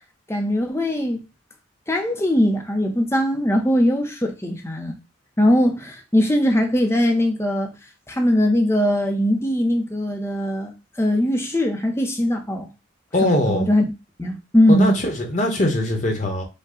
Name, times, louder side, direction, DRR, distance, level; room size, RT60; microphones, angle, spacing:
voice 1, 0.3-1.2 1.9-5.0 5.4-7.7 8.1-12.7 13.2-13.8 14.2-15.0, left 1 dB, 15° left, 0.7 m, -20 dB
voice 2, 13.1-13.7 14.7-16.4, left 1 dB, 40° left, 1.1 m, -21 dB
5.4 x 2.3 x 3.8 m
head